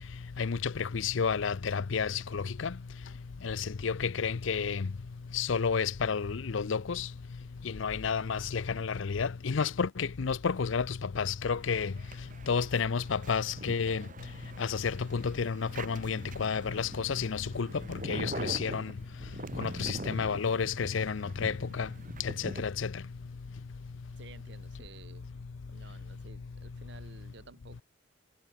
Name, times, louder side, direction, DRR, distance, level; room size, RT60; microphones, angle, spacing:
voice 1, 0.4-2.7 3.4-4.9 5.3-7.1 7.8-10.9 11.2-11.9 12.5-14.0 14.6-18.9 19.6-21.9 22.6-22.9, left 5 dB, 75° left, 0.6 m, -31 dB
sound 1, 11.6-22.6, right 1 dB, 40° right, 2.3 m, -43 dB
voice 2, 24.2-25.3 25.7-27.8, right 3 dB, 60° right, 1.1 m, -53 dB
head